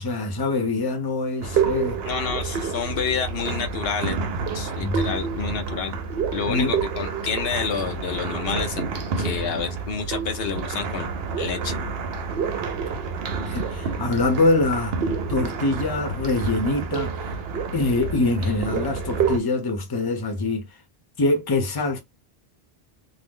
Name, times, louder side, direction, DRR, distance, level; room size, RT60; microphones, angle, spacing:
voice 1, 0.0-2.0 4.8-5.0 6.5-6.8 12.6-12.7 13.4-15.0 15.3-17.1 17.7-20.7 21.2-22.0, left 2 dB, 25° left, 0.6 m, -24 dB
sound 1, 1.4-19.4, right 5 dB, 75° right, 0.8 m, -28 dB
voice 2, 2.0-4.2 4.5-6.0 6.3-8.8 9.2-11.1 11.4-11.8, left 6 dB, 70° left, 0.8 m, -29 dB
2.5 x 2.0 x 3.6 m
omnidirectional pair, 1.1 m